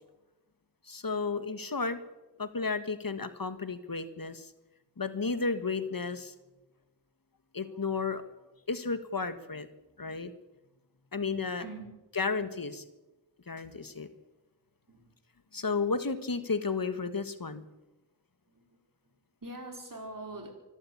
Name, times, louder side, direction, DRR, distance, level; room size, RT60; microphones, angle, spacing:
voice 1, 0.9-2.0 2.4-4.5 5.0-6.3 7.5-8.2 8.7-9.7 10.0-10.3 11.1-11.6 12.2-12.8 13.5-14.1 15.5-17.6, left 4 dB, 55° left, 11 dB, 1.5 m, -33 dB
voice 2, 11.6-11.9 14.9-15.1 18.5-20.5, right 2 dB, 50° right, 3 dB, 4.8 m, -44 dB
24.5 x 12.5 x 8.6 m, 1.0 s
wide cardioid pair, 60°, 40 cm